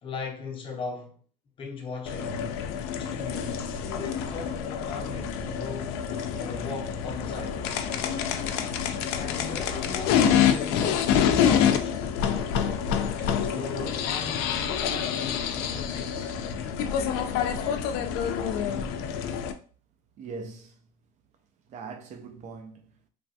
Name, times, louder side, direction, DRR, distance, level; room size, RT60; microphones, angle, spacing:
voice 1, 0.0-1.2 1.6-2.6 3.0-6.0 6.4-7.6 9.1-12.0 13.2-16.3, left 4 dB, 30° left, 0.6 m, -39 dB
sound 1, 2.1-19.5, left 8 dB, 65° left, 0.4 m, -27 dB
voice 2, 20.2-20.8 21.7-23.1, right 4 dB, 40° right, 0.4 m, -41 dB
3.2 x 2.2 x 2.6 m
supercardioid pair, 130°, 18 cm